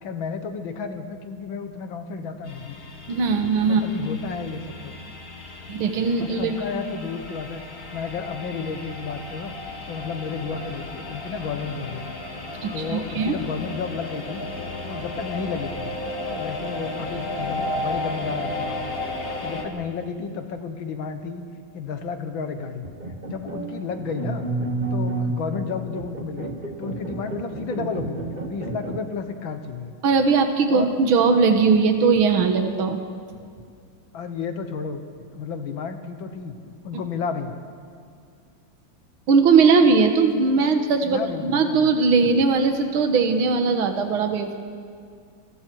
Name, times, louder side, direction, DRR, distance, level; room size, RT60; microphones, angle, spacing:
voice 1, 0.0-2.8 3.7-5.0 6.2-7.6 7.9-9.5 9.9-12.1 12.4-14.4 14.8-15.9 16.2-19.0 19.4-21.4 21.7-22.9 23.3-24.4 24.9-28.2 28.5-29.9 30.7-30.9 34.1-35.0 35.3-37.6 41.0-42.0, left 5 dB, 70° left, 7 dB, 1.9 m, -32 dB
sound 1, 2.4-19.6, left 2 dB, 45° left, 2.3 m, -34 dB
voice 2, 3.1-3.8 5.7-6.5 12.6-13.3 30.0-33.0 39.3-44.6, right 4 dB, 75° right, 6 dB, 2.2 m, -19 dB
sound 2, 22.8-29.0, right 2 dB, 25° right, 1.3 m, -30 dB
29.5 x 20.5 x 4.7 m, 2.2 s
omnidirectional pair, 2.3 m